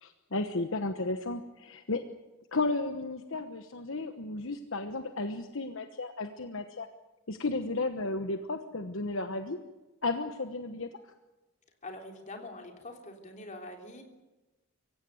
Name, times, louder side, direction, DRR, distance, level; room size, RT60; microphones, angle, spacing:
voice 1, 0.0-2.0 2.5-6.9 7.3-9.6 10.0-10.9, left 2 dB, 60° left, 7 dB, 1.2 m, -33 dB
voice 2, 11.8-14.0, left 2 dB, 35° left, 3 dB, 3.4 m, -44 dB
24.5 x 16.0 x 9.3 m, 1.1 s
head